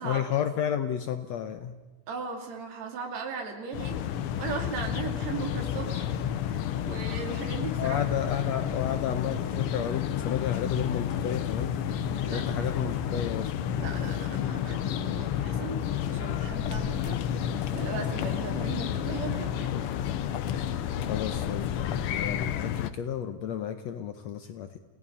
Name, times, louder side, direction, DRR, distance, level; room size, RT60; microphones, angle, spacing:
voice 1, 0.0-1.7 7.8-11.7 12.3-13.5 19.7-19.8 20.5-20.8 21.1-24.8, left 9 dB, 70° left, 9 dB, 1.8 m, -32 dB
voice 2, 2.1-4.0 4.4-6.1 6.8-8.1 8.4-8.5 12.2-12.7 13.7-15.9 16.1-17.2 17.5-19.7, right 5 dB, 60° right, 2 dB, 3.6 m, -37 dB
sound 1, 3.7-22.9, left 9 dB, 85° left, 1.2 m, -31 dB
28.5 x 17.5 x 5.6 m, 1.2 s
omnidirectional pair, 3.6 m